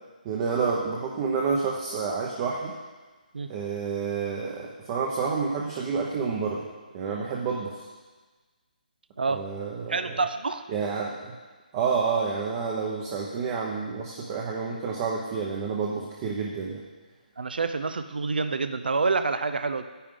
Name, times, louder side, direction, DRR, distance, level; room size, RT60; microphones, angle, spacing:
voice 1, 0.2-2.7 3.5-6.6 6.9-7.9 9.3-10.0 10.7-11.3 11.7-16.8, right 5 dB, 20° right, -2 dB, 0.9 m, -29 dB
voice 2, 9.9-10.6 17.4-19.8, right 4 dB, 80° right, 10 dB, 0.7 m, -27 dB
10.0 x 9.9 x 3.8 m, 1.3 s
hypercardioid pair, 165°, 5 cm